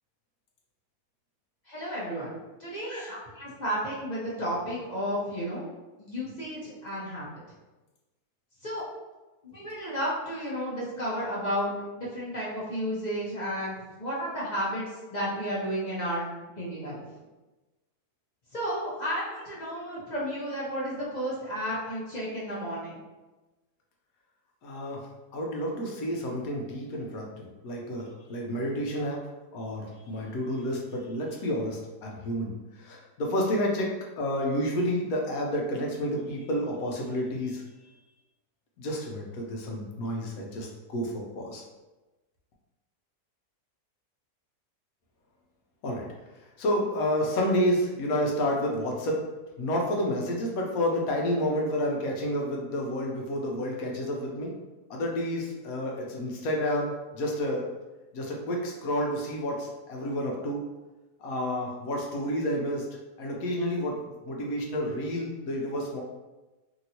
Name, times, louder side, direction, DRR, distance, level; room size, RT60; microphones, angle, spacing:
voice 1, 1.7-5.7 6.0-7.2 8.6-8.8 9.4-14.8 15.1-16.2 16.6-17.0 18.5-23.0, equal, 45° left, -7 dB, 0.6 m, -32 dB
voice 2, 24.6-25.1 25.3-29.2 29.5-32.5 32.8-33.9 34.2-37.6 38.8-41.6 45.8-46.1 46.6-49.2 49.6-54.5 54.9-57.7 58.1-60.6 61.2-62.9 63.2-66.0, equal, 75° left, -1 dB, 1.0 m, -30 dB
2.9 x 2.7 x 2.8 m, 1.1 s
omnidirectional pair, 1.6 m